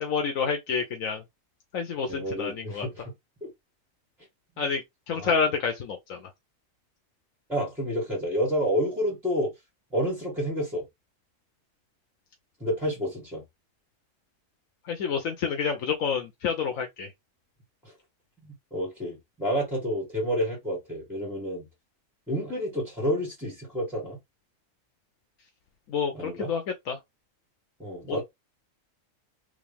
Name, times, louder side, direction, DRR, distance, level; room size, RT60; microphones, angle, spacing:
voice 1, 0.0-1.2 1.7-2.9 4.6-6.2 14.9-17.1 25.9-26.6 26.9-27.0 28.1-28.2, left 6 dB, 80° left, 1.2 m, -28 dB
voice 2, 2.1-3.1 3.4-3.5 4.6-4.7 5.2-5.4 7.5-9.5 9.9-10.8 12.6-13.4 17.8-17.9 18.4-21.7 22.3-24.2 26.1-26.5 27.8-28.2, equal, ahead, 2.0 m, -29 dB
3.8 x 3.2 x 3.4 m
omnidirectional pair, 1.4 m